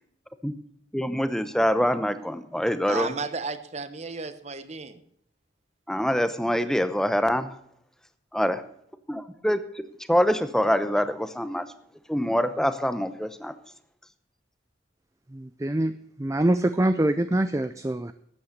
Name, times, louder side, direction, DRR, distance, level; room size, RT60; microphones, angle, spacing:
voice 1, 0.9-3.1 5.9-7.5 8.3-8.6 9.1-9.8 10.1-11.6 12.1-13.5, equal, 5° left, 0.8 m, -25 dB
voice 2, 2.9-5.0, right 4 dB, 35° right, 1.0 m, -33 dB
voice 3, 15.3-18.1, right 1 dB, 15° right, 0.4 m, -25 dB
12.5 x 8.7 x 6.6 m
head